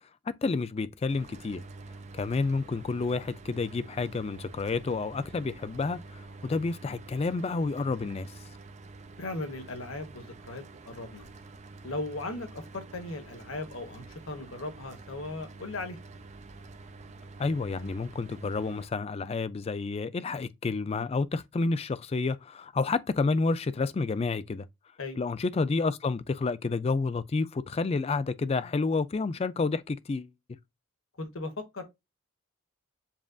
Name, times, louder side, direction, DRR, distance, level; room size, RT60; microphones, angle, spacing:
voice 1, 0.3-1.6 2.1-8.3 17.4-24.7 25.2-30.6, left 3 dB, 30° left, 0.3 m, -30 dB
Mechanical fan, 1.1-18.9, right 3 dB, 35° right, 0.5 m, -48 dB
voice 2, 9.2-11.2 11.8-16.0 25.0-25.2 31.2-31.8, left 2 dB, 75° left, 1.2 m, -37 dB
7.2 x 2.5 x 2.3 m
head